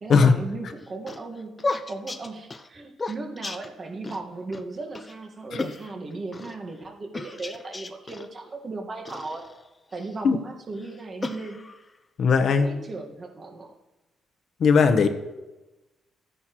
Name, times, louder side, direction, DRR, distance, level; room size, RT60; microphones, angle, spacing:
voice 1, 0.0-9.4 9.9-11.6 12.4-13.7, right 3 dB, 40° right, 2 dB, 1.7 m, -37 dB
sound 1, 0.7-4.2 4.5-4.6 4.9-5.1 5.6-6.6 7.1-8.3 9.1-10.2 10.8-12.0, left 3 dB, 25° left, 0.7 m, -35 dB
voice 2, 12.2-12.7 14.6-15.1, left 5 dB, 60° left, 8 dB, 1.0 m, -18 dB
13.5 x 10.0 x 3.1 m, 1.1 s
cardioid pair, 90°, 0 cm